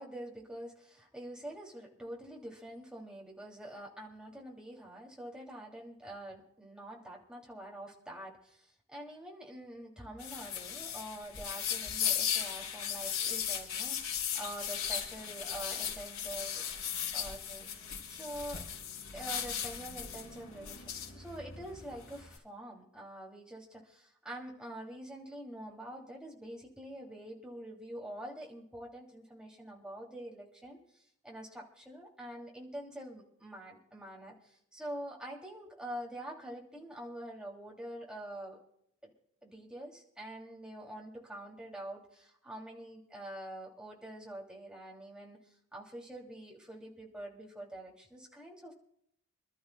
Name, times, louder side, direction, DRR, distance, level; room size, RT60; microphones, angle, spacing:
voice 1, 0.0-16.7 17.1-17.7 18.1-18.6 19.1-38.6 39.0-39.1 39.4-45.4 45.7-48.7, right 1 dB, 5° right, -3 dB, 2.7 m, -46 dB
sound 1, 10.2-22.4, left 8 dB, 85° left, 3.0 m, -37 dB
27.5 x 12.5 x 2.3 m, 0.72 s
head